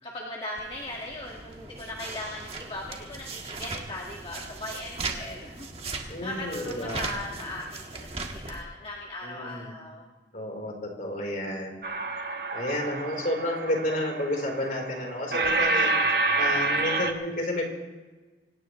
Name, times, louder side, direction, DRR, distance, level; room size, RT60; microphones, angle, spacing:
voice 1, 0.0-10.1, left 1 dB, 30° left, -3 dB, 1.7 m, -38 dB
sound 1, 0.6-8.6, right 3 dB, 35° right, 1.6 m, -38 dB
voice 2, 6.1-7.1 9.2-9.8 10.3-11.8 12.5-17.6, left 1 dB, 50° left, 1 dB, 3.9 m, -31 dB
sound 2, 11.8-17.1, right 2 dB, 60° right, 1.4 m, -28 dB
25.0 x 18.0 x 3.1 m, 1.2 s
head